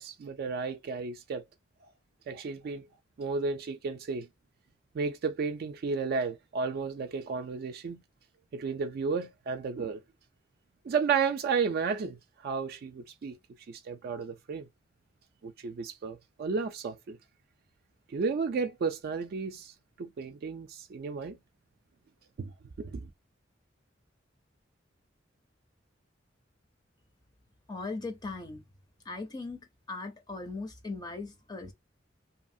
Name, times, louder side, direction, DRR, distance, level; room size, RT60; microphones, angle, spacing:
voice 1, 0.0-1.4 2.3-2.8 3.2-4.3 4.9-8.0 8.5-10.0 10.8-13.4 13.7-14.7 15.4-17.2 18.1-21.4 22.4-22.5 22.8-23.1, right 5 dB, 55° right, 0.3 m, -33 dB
voice 2, 27.7-28.6 29.0-31.7, left 3 dB, 20° left, 0.5 m, -39 dB
2.8 x 2.3 x 2.5 m
head